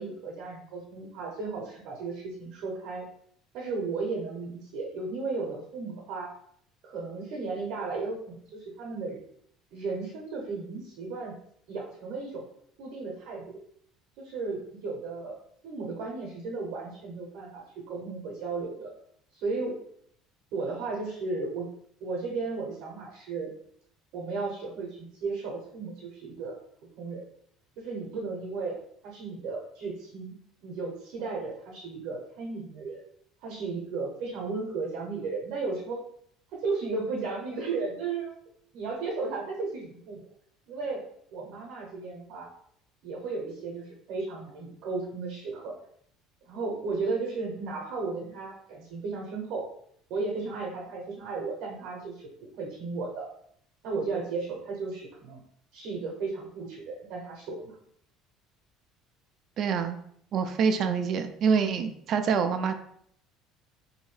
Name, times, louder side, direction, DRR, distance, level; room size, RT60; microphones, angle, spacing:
voice 1, 0.0-3.0 3.5-6.3 6.8-9.2 9.7-11.3 11.7-12.4 12.8-13.6 14.2-15.4 15.6-18.9 19.3-19.8 20.5-21.7 22.0-23.5 24.1-26.6 27.0-27.3 27.8-28.8 29.0-30.3 30.6-33.0 33.4-36.0 36.5-38.3 38.7-40.3 40.7-41.0 41.3-42.5 43.0-45.8 46.4-49.7 50.1-53.3 53.8-55.4 55.7-57.8 60.8-61.1, right 4 dB, 70° right, -1 dB, 0.8 m, -34 dB
voice 2, 59.6-60.0 60.3-62.7, right 6 dB, 50° right, 8 dB, 0.3 m, -26 dB
2.7 x 2.6 x 3.2 m, 0.67 s
cardioid pair, 120°, 0 cm